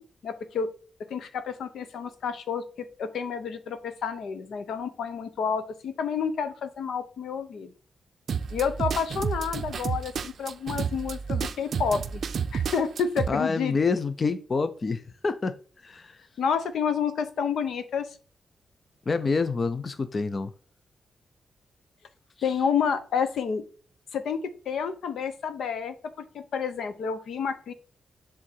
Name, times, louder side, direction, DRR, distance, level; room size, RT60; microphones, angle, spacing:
voice 1, 0.2-0.7 1.1-2.6 3.0-7.7 8.5-12.2 12.5-13.7 16.4-18.1 22.4-23.6 24.1-27.7, left 6 dB, 80° left, 0.9 m, -29 dB
sound 1, 8.3-13.3, right 6 dB, 55° right, 0.5 m, -30 dB
voice 2, 13.3-15.6 15.8-16.2 19.1-20.5, left 4 dB, 30° left, 0.5 m, -27 dB
7.5 x 3.7 x 4.2 m
wide cardioid pair, 160°, 0 cm